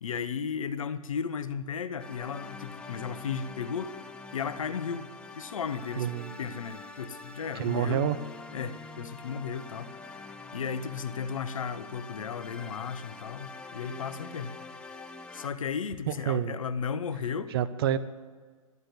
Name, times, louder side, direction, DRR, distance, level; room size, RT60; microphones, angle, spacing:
voice 1, 0.0-4.0 4.3-5.1 5.4-6.1 6.4-8.1 8.5-9.9 10.5-14.6 15.3-17.5, left 6 dB, 65° left, 1.0 m, -35 dB
sound 1, 2.0-15.5, left 3 dB, 5° left, 0.6 m, -45 dB
voice 2, 6.0-6.3 7.5-8.2 16.1-16.6 17.5-18.0, right 10 dB, 40° right, 0.8 m, -28 dB
13.5 x 8.9 x 9.3 m
figure-of-eight pair, 125°, 18 cm